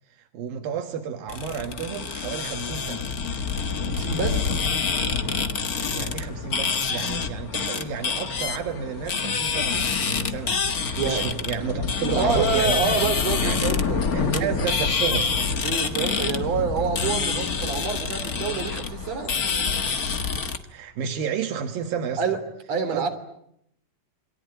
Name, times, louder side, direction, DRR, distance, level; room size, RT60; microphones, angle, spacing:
voice 1, 0.2-3.1 5.9-13.0 13.4-13.7 14.1-15.3 20.7-22.2 22.9-23.1, right 6 dB, 80° right, 3.2 m, -31 dB
sound 1, 1.3-20.6, left 5 dB, 50° left, 1.0 m, -27 dB
voice 2, 3.9-4.7 11.0-11.2 12.0-14.6 15.6-19.3 22.2-22.4 22.7-23.1, right 5 dB, 50° right, 4.1 m, -27 dB
28.0 x 22.5 x 9.3 m
omnidirectional pair, 4.1 m